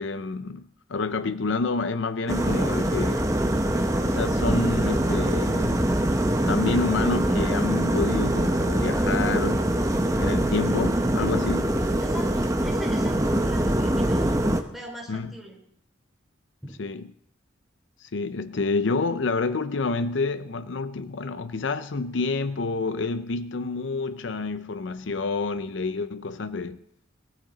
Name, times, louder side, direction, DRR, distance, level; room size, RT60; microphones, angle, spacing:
voice 1, 0.0-3.2 4.0-5.8 6.5-9.7 10.2-11.8 15.1-15.3 16.8-17.0 18.0-26.8, left 4 dB, 75° left, 0.6 m, -28 dB
sound 1, 2.3-14.6, right 1 dB, 15° right, 0.9 m, -23 dB
voice 2, 12.0-14.4 14.7-15.6 16.6-16.7, right 1 dB, ahead, 3.8 m, -41 dB
19.0 x 13.5 x 4.1 m
head